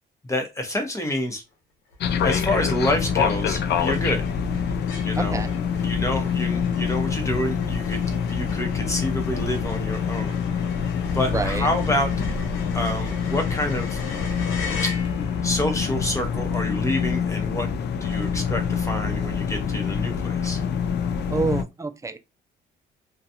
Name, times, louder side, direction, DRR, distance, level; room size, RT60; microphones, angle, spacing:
voice 1, 0.3-1.4 2.2-4.2 5.0-5.4 5.8-10.7 11.0-12.1 12.7-14.0 15.4-17.7 18.0-20.6, left 1 dB, 15° left, 1.0 m, -28 dB
sound 1, 1.1-1.5 1.9-2.0 2.3-15.5, left 4 dB, 85° left, 0.8 m, -40 dB
sound 2, 2.0-21.6, left 6 dB, 60° left, 0.4 m, -26 dB
voice 2, 5.2-5.5 11.3-11.7 21.3-22.2, right 3 dB, 15° right, 0.4 m, -27 dB
2.4 x 2.2 x 2.8 m
cardioid pair, 90°, 20 cm